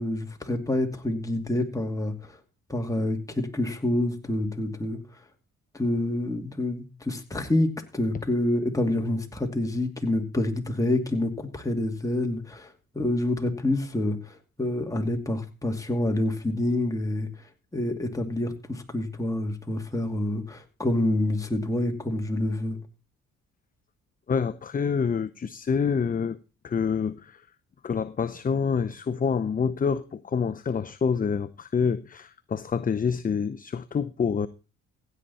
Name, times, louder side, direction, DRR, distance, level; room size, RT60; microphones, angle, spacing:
voice 1, 0.0-2.4 2.7-5.0 5.7-17.3 17.7-22.8, left 1 dB, 10° left, 2.5 m, -27 dB
voice 2, 24.3-26.4 26.6-27.4 27.8-34.5, left 6 dB, 30° left, 0.6 m, -27 dB
16.0 x 9.1 x 4.2 m
cardioid pair, 90°, 30 cm